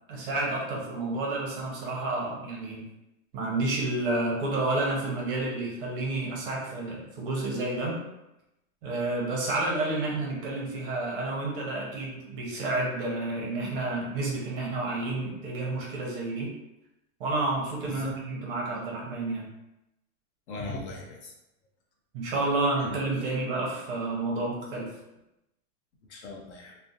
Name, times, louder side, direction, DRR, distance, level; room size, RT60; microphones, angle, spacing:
voice 1, 0.1-2.9 3.3-8.0 8.8-16.5 17.2-19.5 22.1-24.9, right 2 dB, 40° right, -3 dB, 0.6 m, -30 dB
voice 2, 17.8-18.2 20.5-21.3 22.8-23.0 26.1-26.8, left 2 dB, 50° left, 0 dB, 0.5 m, -38 dB
2.3 x 2.0 x 2.6 m, 0.91 s
supercardioid pair, 165°, 43 cm